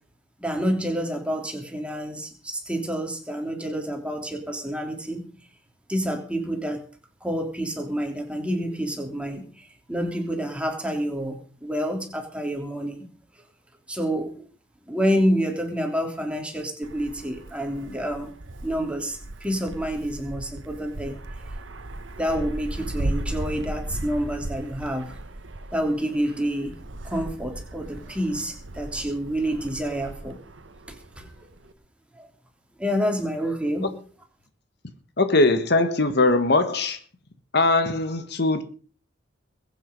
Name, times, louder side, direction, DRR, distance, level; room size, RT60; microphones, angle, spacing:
voice 1, 0.4-5.3 5.9-6.8 7.2-13.1 13.9-14.4 14.9-18.3 18.6-21.2 22.2-25.1 25.7-26.8 27.0-30.4 30.9-31.3 32.2-32.3 32.8-33.9, equal, 5° right, 3.2 m, -28 dB
Wind, 16.8-31.7, right 1 dB, 85° right, 1.2 m, -36 dB
voice 2, 35.2-37.0 37.5-38.6, left 2 dB, 60° left, 1.6 m, -20 dB
21.5 x 9.0 x 5.4 m
head